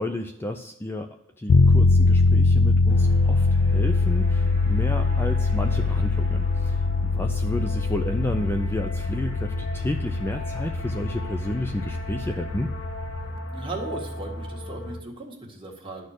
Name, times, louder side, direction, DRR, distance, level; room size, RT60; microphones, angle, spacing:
voice 1, 0.0-12.7, left 1 dB, 10° left, 6 dB, 0.4 m, -31 dB
sound 1, 1.5-13.4, left 3 dB, 80° left, 0.4 m, -22 dB
sound 2, 2.9-15.0, equal, 65° left, 1.1 m, -36 dB
voice 2, 13.5-16.1, right 2 dB, 25° right, -1 dB, 1.7 m, -37 dB
11.5 x 4.3 x 6.5 m, 0.89 s
head